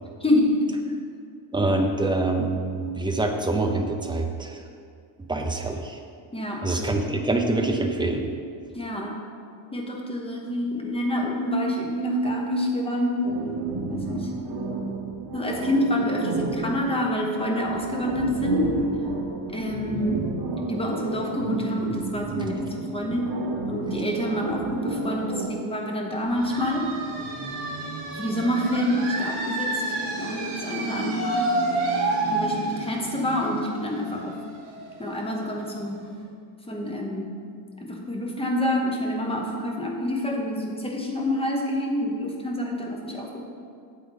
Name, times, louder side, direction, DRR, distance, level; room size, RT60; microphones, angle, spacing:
voice 1, 0.2-0.8 1.5-1.7 6.3-6.7 8.7-9.3 9.7-13.3 13.9-14.3 15.3-18.8 19.5-20.2 20.7-23.4 23.7-26.9 28.2-29.8 30.2-31.6 32.2-34.4 35.0-36.1 36.7-37.4 37.8-43.5, left 1 dB, 10° left, 0 dB, 0.9 m, -27 dB
voice 2, 1.5-4.6 5.3-6.0 6.6-8.2, right 2 dB, 10° right, 3 dB, 0.5 m, -25 dB
sound 1, 13.2-25.5, right 3 dB, 55° right, 0.9 m, -31 dB
sound 2, 26.3-35.8, right 2 dB, 80° right, 2.1 m, -29 dB
8.5 x 7.7 x 4.0 m, 2.3 s
wide cardioid pair, 175°, 48 cm